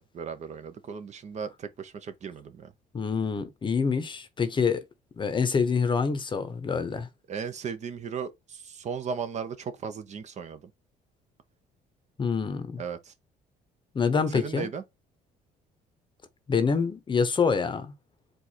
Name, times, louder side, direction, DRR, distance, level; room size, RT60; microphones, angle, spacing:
voice 1, 0.0-2.7 7.3-10.7 12.8-13.1 14.3-14.8, right 6 dB, 45° right, 0.7 m, -36 dB
voice 2, 2.9-4.8 5.2-7.1 12.2-12.8 13.9-14.7 16.5-17.9, left 5 dB, 30° left, 0.8 m, -26 dB
4.6 x 2.5 x 4.2 m
cardioid pair, 110°, 17 cm